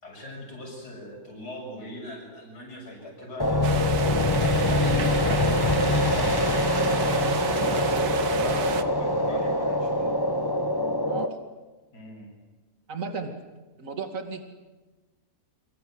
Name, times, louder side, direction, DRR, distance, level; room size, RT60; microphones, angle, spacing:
voice 1, 0.0-4.4 4.7-6.6 8.3-10.1 11.9-12.3, left 1 dB, 85° left, -1 dB, 7.9 m, -40 dB
sound 1, 3.4-11.3, left 1 dB, 15° left, 1.5 m, -24 dB
sound 2, 3.6-8.8, right 7 dB, 70° right, 1.7 m, -33 dB
voice 2, 7.5-8.2 11.1-11.4 12.9-13.3 13.8-14.4, right 4 dB, 55° right, 4 dB, 2.8 m, -34 dB
29.0 x 25.5 x 8.0 m, 1.2 s
omnidirectional pair, 1.7 m